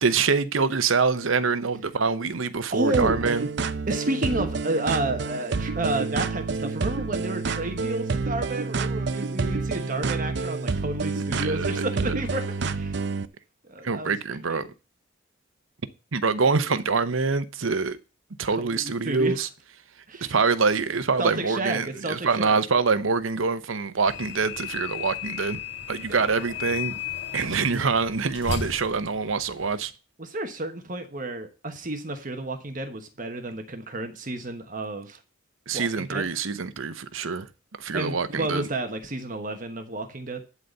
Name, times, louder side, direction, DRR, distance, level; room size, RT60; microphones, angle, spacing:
voice 1, 0.0-3.5 11.4-11.7 13.8-14.7 16.1-18.0 18.4-19.5 20.2-25.6 25.9-26.9 27.3-29.9 35.7-37.5 37.8-38.7, right 4 dB, 75° right, 0.8 m, -25 dB
voice 2, 2.7-3.2 3.9-13.0 13.7-14.2 14.5-14.7 18.6-19.4 20.1-20.3 21.2-22.6 26.1-26.4 30.2-35.2 35.7-36.3 37.9-40.4, right 2 dB, 40° right, 1.2 m, -31 dB
sound 1, 2.9-13.3, right 4 dB, 55° right, 0.5 m, -28 dB
sound 2, 24.0-29.9, left 7 dB, 70° left, 2.7 m, -35 dB
11.5 x 4.1 x 7.9 m
head